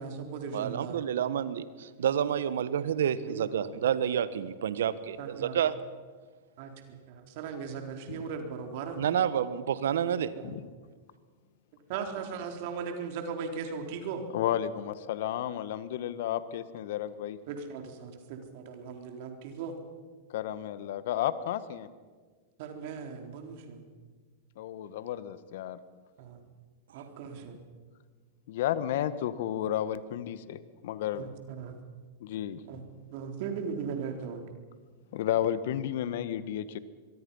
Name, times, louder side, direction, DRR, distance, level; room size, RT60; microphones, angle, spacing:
voice 1, 0.0-1.0 3.3-3.5 5.2-5.6 6.6-9.0 10.1-10.5 11.9-14.2 17.5-19.7 22.6-23.8 26.2-26.4 26.9-27.6 31.1-31.8 32.7-32.8 33.1-34.4, right 6 dB, 55° right, 4 dB, 3.9 m, -38 dB
voice 2, 0.5-5.7 9.0-10.3, right 9 dB, 75° right, 15 dB, 1.4 m, -29 dB
voice 3, 14.3-17.4 20.3-21.9 24.6-25.8 28.5-31.2 32.2-32.6 35.1-36.8, left 11 dB, 65° left, 14 dB, 1.4 m, -32 dB
25.0 x 22.5 x 5.6 m, 1.5 s
hypercardioid pair, 105°, 0 cm